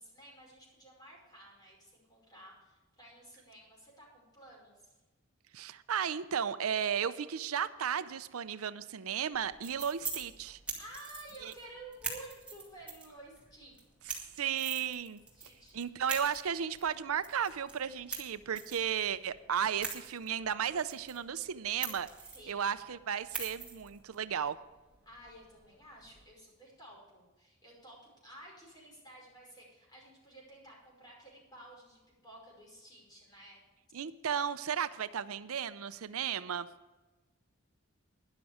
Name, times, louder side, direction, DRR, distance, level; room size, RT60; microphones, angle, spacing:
voice 1, 0.0-5.0 10.7-13.8 15.3-15.8 22.3-22.7 25.1-33.6, right 1 dB, 20° left, -3 dB, 5.4 m, -53 dB
voice 2, 5.5-10.6 11.4-11.5 14.4-15.3 15.7-22.1 22.5-24.6 33.9-36.7, right 8 dB, 85° right, 13 dB, 0.6 m, -34 dB
sound 1, 9.3-26.2, right 4 dB, 5° right, 2.2 m, -45 dB
12.5 x 11.0 x 5.0 m, 1.1 s
head